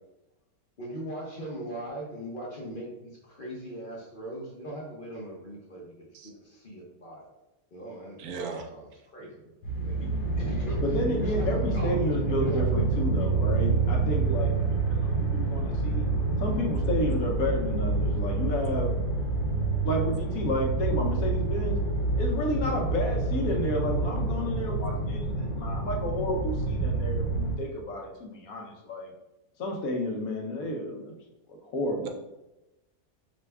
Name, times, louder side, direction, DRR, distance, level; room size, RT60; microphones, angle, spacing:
voice 1, 0.8-7.3 7.7-9.3 9.8-13.5, right 1 dB, 45° left, -3 dB, 0.8 m, -40 dB
voice 2, 8.2-8.7 32.0-32.1, right 5 dB, 75° right, 4 dB, 1.0 m, -36 dB
sound 1, 9.6-27.6, right 3 dB, 90° left, 1.5 m, -27 dB
voice 3, 10.8-16.0 16.4-18.9 19.8-21.8 22.2-29.1 29.6-31.1 31.5-32.1, left 1 dB, 70° left, 1 dB, 1.1 m, -31 dB
5.1 x 2.3 x 3.3 m, 0.97 s
omnidirectional pair, 1.6 m